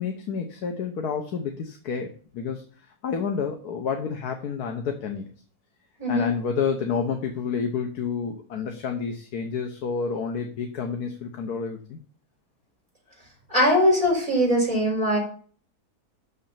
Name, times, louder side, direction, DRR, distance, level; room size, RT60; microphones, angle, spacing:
voice 1, 0.0-2.6 3.0-5.3 6.1-12.0, left 6 dB, 90° left, 4 dB, 1.5 m, -29 dB
voice 2, 6.0-6.3 13.5-15.2, equal, 20° right, -2 dB, 4.6 m, -21 dB
6.6 x 6.2 x 7.2 m, 0.43 s
omnidirectional pair, 1.6 m